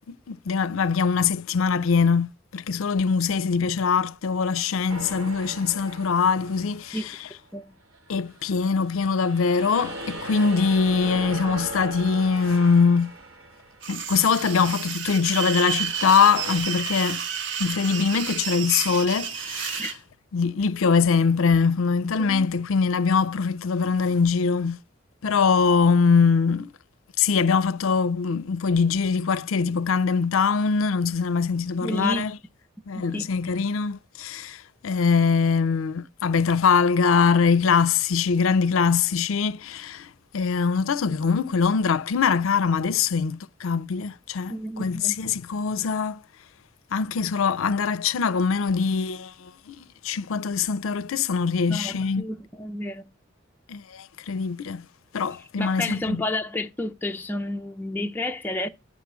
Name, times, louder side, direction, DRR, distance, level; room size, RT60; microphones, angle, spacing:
voice 1, 0.1-7.2 8.1-13.1 13.9-17.2 17.6-19.9 20.3-24.8 25.2-26.7 27.2-32.4 32.9-46.2 46.9-52.2 53.7-54.8 55.1-56.2, left 5 dB, 75° left, 0.4 m, -23 dB
sound 1, 4.9-7.4 7.9-14.4 15.5-16.6, right 2 dB, 85° right, 1.7 m, -39 dB
sound 2, 13.8-20.0, right 8 dB, 55° right, 0.6 m, -31 dB
voice 2, 31.8-32.3 32.9-33.3 44.5-45.2 51.7-53.0 55.6-58.7, left 1 dB, 10° left, 0.4 m, -31 dB
9.5 x 4.0 x 6.0 m
head